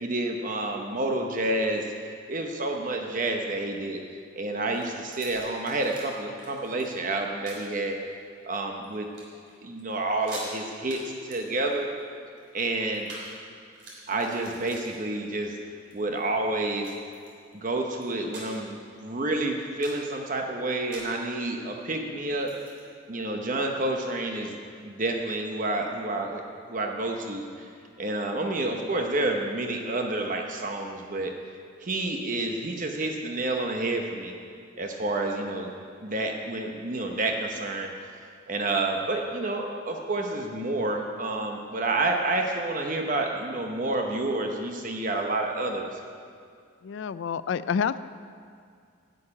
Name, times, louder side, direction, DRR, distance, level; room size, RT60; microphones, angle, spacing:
voice 1, 0.0-1.8 2.3-4.0 4.3-8.0 8.4-9.1 9.6-11.9 12.5-13.1 14.1-15.6 15.9-16.9 17.5-22.5 23.1-24.5 24.8-26.4 26.7-27.7 28.0-31.3 31.8-34.4 34.8-35.7 36.0-46.0, right 2 dB, 40° right, 2 dB, 0.9 m, -29 dB
sound 1, 4.7-6.1 6.4-6.8 7.4-7.7 8.3-8.9 9.1-9.5 9.8-9.9 10.1-10.5 10.9-11.1 11.3-13.3 13.6-15.4 15.8-16.2 16.8-17.6 18.0-18.7 19.1-19.2 19.6-20.1 20.9-21.2 22.3-22.8, right 2 dB, 60° right, 3.5 m, -45 dB
voice 2, 46.8-48.0, left 6 dB, 65° left, 15 dB, 0.3 m, -28 dB
11.5 x 6.5 x 8.7 m, 2.2 s
head